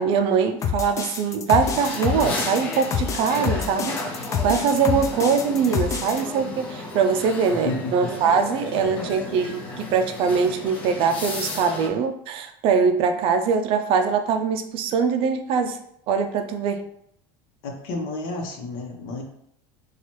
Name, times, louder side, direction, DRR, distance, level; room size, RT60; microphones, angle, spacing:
voice 1, 0.0-15.8 16.1-16.8, right 5 dB, 50° right, 7 dB, 0.4 m, -22 dB
sound 1, 0.6-6.2, left 7 dB, 25° left, 0.4 m, -27 dB
sound 2, 1.6-11.9, left 2 dB, 40° left, 0.9 m, -34 dB
voice 2, 7.6-8.1 8.7-9.1 17.6-19.2, left 2 dB, 70° left, 2 dB, 0.9 m, -31 dB
2.9 x 2.4 x 4.3 m, 0.70 s
supercardioid pair, 135°, 12 cm